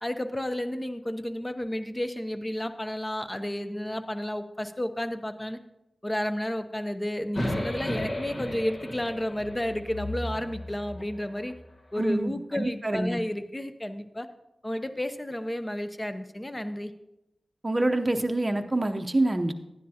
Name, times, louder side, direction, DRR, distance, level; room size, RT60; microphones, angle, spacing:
voice 1, 0.0-5.6 6.0-11.6 11.9-14.3 14.6-16.9, left 1 dB, 20° left, 10 dB, 0.7 m, -32 dB
sound 1, 7.3-11.6, left 1 dB, 55° left, 1.3 m, -34 dB
voice 2, 12.0-13.2 17.6-19.5, right 1 dB, 30° right, 6 dB, 0.7 m, -26 dB
12.5 x 10.0 x 2.8 m, 0.92 s
cardioid pair, 50°, 0 cm